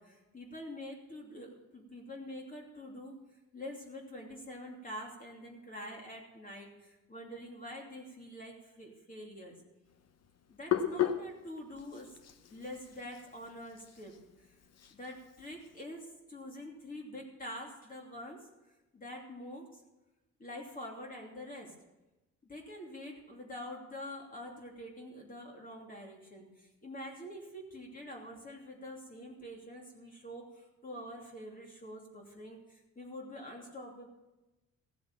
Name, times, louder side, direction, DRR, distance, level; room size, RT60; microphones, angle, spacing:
voice 1, 0.0-3.1 3.5-9.5 10.5-12.2 12.5-14.1 14.4-14.5 14.9-18.4 18.9-19.7 20.4-21.7 22.4-34.1, left 1 dB, 30° left, -1 dB, 2.9 m, -46 dB
Hands, 9.9-15.8, left 10 dB, 55° left, 1.0 m, -37 dB
15.5 x 7.7 x 7.1 m, 1.0 s
cardioid pair, 90°, 30 cm